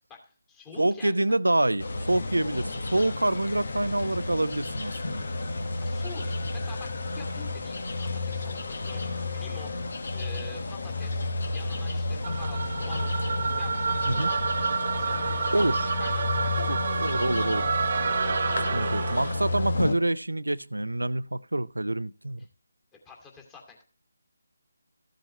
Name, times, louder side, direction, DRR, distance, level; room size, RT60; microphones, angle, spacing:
voice 1, 0.1-1.1 5.8-9.7 10.1-13.2 13.6-14.4 14.9-17.2 23.0-23.8, left 5 dB, 15° left, 2.5 m, -47 dB
voice 2, 0.8-5.3 14.1-14.3 15.5-15.8 16.6-17.6 18.7-22.5, right 1 dB, 90° right, 0.5 m, -27 dB
sound 1, 1.8-20.0, left 2 dB, 60° left, 1.3 m, -31 dB
sound 2, 12.2-19.5, right 5 dB, 50° right, 0.8 m, -29 dB
14.5 x 7.6 x 3.2 m
figure-of-eight pair, 155°, 0 cm